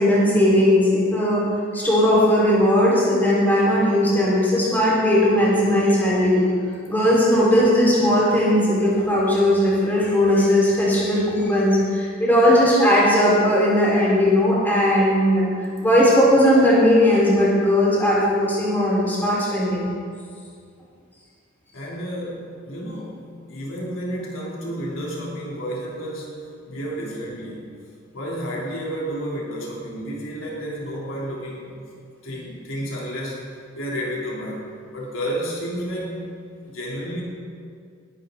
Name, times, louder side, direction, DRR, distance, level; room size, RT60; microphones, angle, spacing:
voice 1, 0.0-1.4 1.7-6.4 6.9-15.4 15.8-19.9, left 1 dB, 10° left, -7 dB, 4.6 m, -18 dB
voice 2, 21.7-26.4 26.7-27.7 28.1-31.8 32.2-33.5 33.7-36.3 36.6-37.2, equal, 75° left, -4 dB, 3.3 m, -31 dB
19.5 x 12.5 x 3.9 m, 2.2 s
head